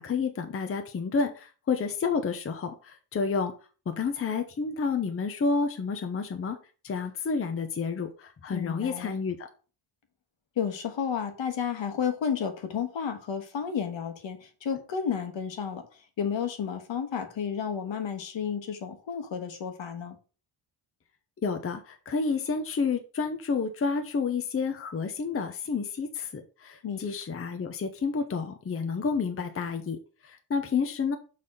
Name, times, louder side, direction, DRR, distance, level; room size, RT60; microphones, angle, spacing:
voice 1, 0.0-3.5 3.9-6.6 6.8-9.5 21.4-31.2, left 5 dB, 30° left, 7 dB, 0.7 m, -30 dB
voice 2, 8.5-9.2 10.6-20.2 26.8-27.0, left 7 dB, 65° left, 7 dB, 1.5 m, -32 dB
6.8 x 4.1 x 5.4 m, 0.36 s
wide cardioid pair, 170°, 48 cm